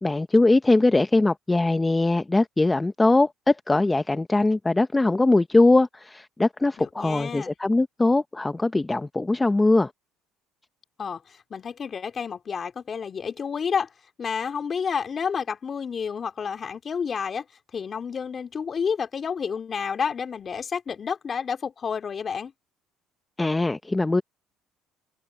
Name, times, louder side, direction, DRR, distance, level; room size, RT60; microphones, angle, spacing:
voice 1, 0.0-9.9 23.4-24.2, left 2 dB, 15° left, 0.7 m, -21 dB
voice 2, 6.8-7.5 11.0-13.9 14.2-17.4 17.7-22.5, left 6 dB, 35° left, 3.3 m, -30 dB
supercardioid pair, 95°, 0 cm